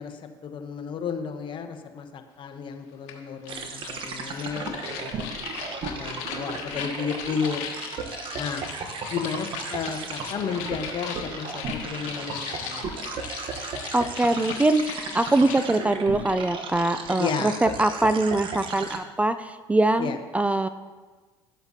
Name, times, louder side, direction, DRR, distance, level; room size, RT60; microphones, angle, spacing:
voice 1, 0.0-5.4 5.8-7.6 8.4-8.7 9.1-13.1 17.2-17.6 17.9-18.0 20.0-20.2, left 6 dB, 50° left, 7 dB, 1.0 m, -33 dB
sound 1, 3.1-3.2 3.5-15.6, left 8 dB, 70° left, 1.3 m, -38 dB
sound 2, 3.5-19.0, right 4 dB, 50° right, 1.0 m, -35 dB
voice 2, 13.9-20.7, right 2 dB, 10° right, 11 dB, 0.3 m, -23 dB
12.5 x 7.9 x 2.8 m, 1.4 s
hypercardioid pair, 80°, 11 cm